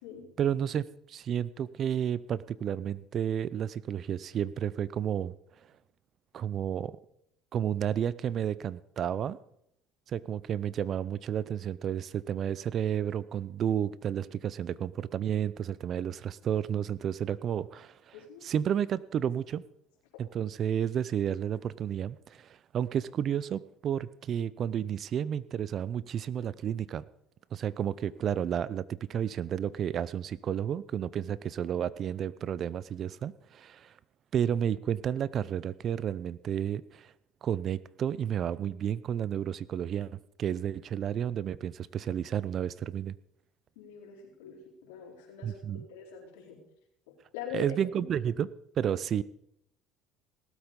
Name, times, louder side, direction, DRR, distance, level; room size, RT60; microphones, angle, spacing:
voice 1, 0.4-5.3 6.3-6.9 7.5-9.4 10.1-19.6 20.2-27.0 27.5-33.9 34.3-37.1 37.4-43.2 45.4-45.8 47.5-48.5 48.8-49.2, right 9 dB, 50° right, 20 dB, 0.5 m, -31 dB
voice 2, 18.1-18.5 43.8-46.6 47.1-47.7, left 8 dB, 85° left, -2 dB, 4.2 m, -44 dB
18.0 x 8.2 x 5.2 m, 0.74 s
supercardioid pair, 90°, 0 cm